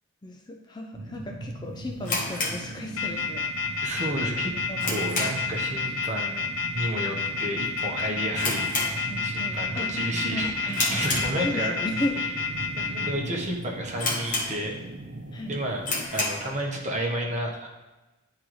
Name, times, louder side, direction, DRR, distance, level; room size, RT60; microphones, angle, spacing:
voice 1, 0.2-3.9 4.2-5.4 5.9-6.0 9.1-10.0 10.3-12.3 15.3-15.6, left 1 dB, 20° left, 2 dB, 0.4 m, -36 dB
sound 1, 0.9-16.1, right 2 dB, 65° right, 0.6 m, -39 dB
sound 2, 2.0-3.4 3.6-3.7 4.3-5.6 5.9-6.2 6.5-6.6 7.3-7.5 7.8-7.9 8.3-9.5 9.9-10.2 10.7-11.8 12.4-12.5 13.1-13.2 13.4-13.5 14.0-14.9 15.3-15.4 15.8-16.5, left 2 dB, 40° left, 1.1 m, -30 dB
sound 3, 2.9-13.1, left 5 dB, 75° left, 0.7 m, -29 dB
voice 2, 3.8-4.5 4.8-6.5 6.7-8.7 9.2-11.7 12.8-14.8 15.5-15.8 16.1-17.7, right 1 dB, 35° right, -1 dB, 1.0 m, -31 dB
9.8 x 3.8 x 3.1 m, 1.1 s
head